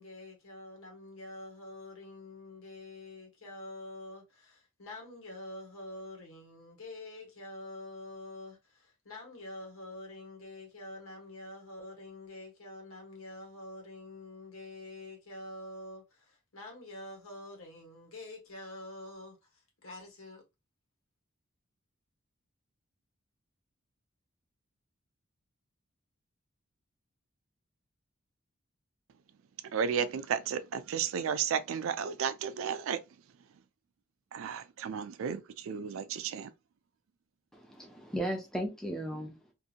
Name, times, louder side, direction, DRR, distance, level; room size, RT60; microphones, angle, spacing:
voice 1, 0.0-19.4 19.8-20.4, left 2 dB, 90° left, 1.2 m, -46 dB
voice 2, 29.7-33.0 34.3-36.5, right 7 dB, 80° right, 0.4 m, -33 dB
voice 3, 37.5-39.5, equal, ahead, 0.6 m, -36 dB
2.7 x 2.6 x 2.4 m
head